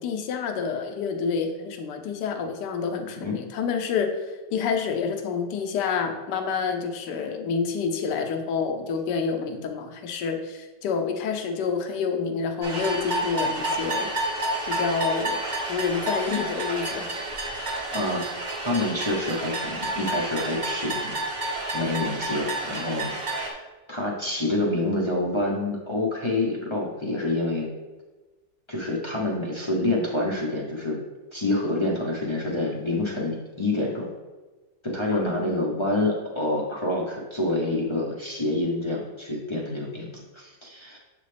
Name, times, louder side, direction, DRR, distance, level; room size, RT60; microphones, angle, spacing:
voice 1, 0.0-14.1 14.7-15.4 15.7-17.8 35.1-35.6, left 5 dB, 75° left, 5 dB, 1.3 m, -28 dB
sound 1, 12.6-23.5, right 2 dB, 35° right, 0.7 m, -30 dB
voice 2, 17.9-18.2 18.6-21.2 21.7-23.6 23.9-27.7 28.7-31.0 31.3-34.1 34.8-41.0, left 2 dB, 35° left, -3 dB, 0.4 m, -27 dB
7.4 x 4.0 x 3.3 m, 1.2 s
omnidirectional pair, 1.9 m